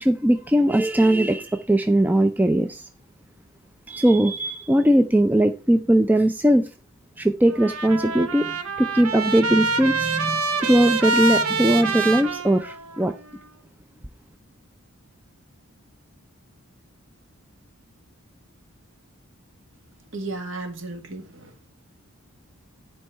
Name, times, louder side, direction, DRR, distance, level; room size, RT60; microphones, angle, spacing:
voice 1, 0.0-2.9 3.9-6.7 7.2-8.5 8.8-13.1, right 1 dB, 10° right, 0.4 m, -20 dB
Trumpet, 7.5-13.1, right 4 dB, 75° right, 1.3 m, -26 dB
voice 2, 20.1-21.7, right 2 dB, 55° right, 2.1 m, -34 dB
10.5 x 4.6 x 5.6 m
head